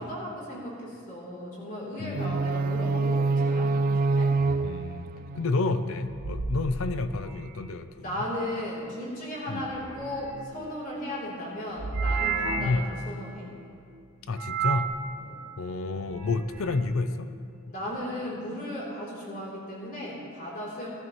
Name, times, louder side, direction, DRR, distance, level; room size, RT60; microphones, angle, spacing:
voice 1, 0.0-4.3 8.0-13.5 15.2-15.4 17.7-20.9, left 1 dB, 40° left, -5 dB, 3.3 m, -36 dB
voice 2, 2.0-2.4 4.6-5.1 5.3-8.2 9.5-9.7 12.6-12.9 14.3-14.9 15.6-17.3, left 3 dB, 70° left, 10 dB, 0.5 m, -29 dB
sound 1, 2.1-6.2, right 3 dB, 40° right, 0.3 m, -26 dB
sound 2, 6.1-7.7 9.6-10.7 11.8-12.9 14.4-15.0 16.0-16.9, right 4 dB, 90° right, 0.9 m, -32 dB
18.0 x 12.0 x 3.1 m, 2.4 s
head